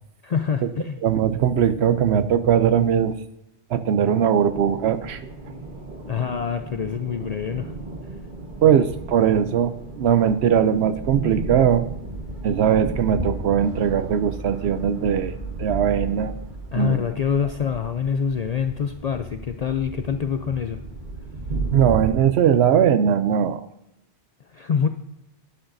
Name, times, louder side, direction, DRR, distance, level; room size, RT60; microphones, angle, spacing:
voice 1, 0.2-1.0 6.1-7.7 16.7-20.8 24.5-24.9, left 7 dB, 55° left, 7 dB, 0.4 m, -25 dB
voice 2, 1.0-3.2 3.7-5.2 8.6-11.8 12.4-16.3 16.8-17.0 21.7-23.6, right 9 dB, 75° right, 12 dB, 0.8 m, -20 dB
sound 1, 4.4-22.1, right 2 dB, 45° right, 1.5 m, -34 dB
11.5 x 10.5 x 2.6 m, 0.84 s
omnidirectional pair, 1.1 m